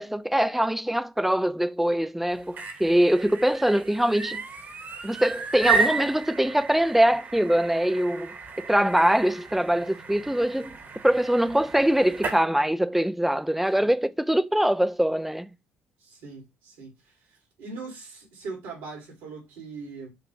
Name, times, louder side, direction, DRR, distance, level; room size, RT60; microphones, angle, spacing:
voice 1, 0.0-4.4 5.0-8.3 8.6-10.8 11.0-15.5, right 1 dB, 5° right, 0.4 m, -23 dB
sound 1, 2.3-12.4, right 5 dB, 50° right, 1.2 m, -33 dB
voice 2, 16.0-17.2 17.6-20.1, right 4 dB, 80° right, 2.2 m, -40 dB
6.8 x 2.5 x 3.0 m
hypercardioid pair, 60°, 4 cm